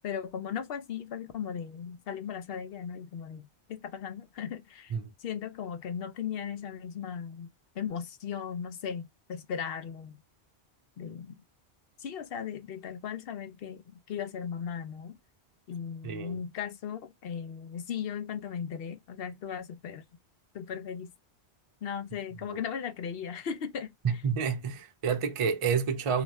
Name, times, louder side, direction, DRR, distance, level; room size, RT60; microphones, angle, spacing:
voice 1, 0.0-7.5 7.8-10.2 11.0-11.4 12.0-15.2 15.7-20.0 20.5-21.1 21.8-24.2, left 7 dB, 65° left, 0.8 m, -37 dB
voice 2, 16.0-16.4 22.5-22.6 24.0-26.2, right 6 dB, 45° right, 0.4 m, -29 dB
2.6 x 2.4 x 3.1 m
omnidirectional pair, 1.1 m